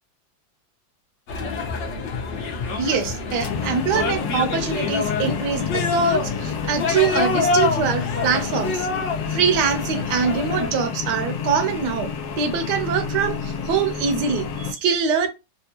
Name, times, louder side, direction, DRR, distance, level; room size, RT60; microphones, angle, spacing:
sound 1, 1.3-10.7, left 4 dB, 55° left, 0.8 m, -26 dB
voice 1, 2.8-8.9 9.3-15.3, right 6 dB, 70° right, 1.3 m, -24 dB
sound 2, 3.4-14.7, left 6 dB, 80° left, 1.2 m, -29 dB
3.4 x 2.2 x 2.9 m
omnidirectional pair, 2.1 m